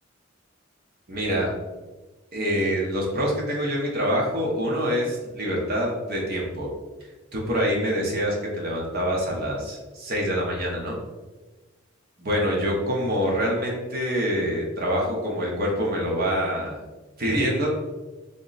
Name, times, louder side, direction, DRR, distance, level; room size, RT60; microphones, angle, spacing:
voice 1, 1.1-1.5 2.3-6.7 7.3-11.0 12.2-16.8 17.2-17.7, equal, 50° right, -2 dB, 0.8 m, -25 dB
3.6 x 2.1 x 3.8 m, 1.2 s
head